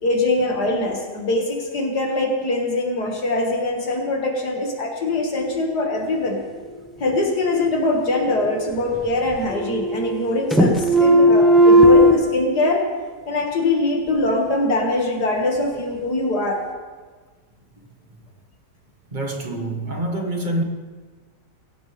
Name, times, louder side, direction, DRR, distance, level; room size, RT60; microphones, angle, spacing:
voice 1, 0.0-6.4 7.0-12.9 13.3-16.6, left 2 dB, 80° left, 2.7 m, -22 dB
sound 1, 8.0-9.0 9.3-10.3 10.5-12.1, equal, ahead, 1.3 m, -15 dB
voice 2, 19.1-20.6, right 1 dB, 30° right, 1.5 m, -26 dB
24.0 x 16.0 x 3.5 m
omnidirectional pair, 1.7 m